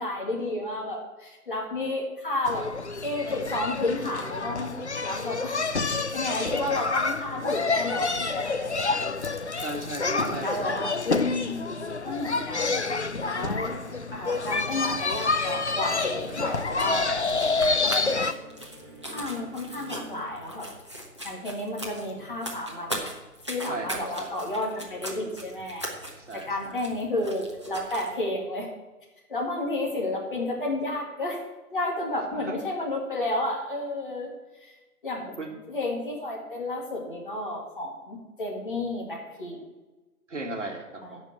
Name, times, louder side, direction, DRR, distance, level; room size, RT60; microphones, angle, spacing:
voice 1, 0.0-2.7 3.0-9.0 10.0-12.8 13.2-13.8 14.1-17.1 17.8-18.3 19.1-20.7 21.2-23.0 23.5-25.9 26.3-28.7 29.3-31.4 31.7-34.3 34.6-34.7 35.0-35.4 35.7-39.6 41.0-41.2, left 2 dB, 35° left, -1 dB, 2.1 m, -31 dB
sound 1, 2.5-18.3, left 3 dB, 50° left, 0.5 m, -28 dB
voice 2, 9.6-10.8 23.7-23.9 24.2-24.4 26.3-26.7 32.4-32.5 35.4-35.6 40.3-41.2, right 2 dB, 50° right, 3 dB, 1.7 m, -36 dB
sound 2, 12.4-20.2, right 2 dB, 15° left, 1.3 m, -49 dB
sound 3, 15.0-28.1, right 1 dB, 20° right, 0.8 m, -40 dB
10.0 x 5.3 x 8.0 m, 1.2 s
figure-of-eight pair, 155°, 47 cm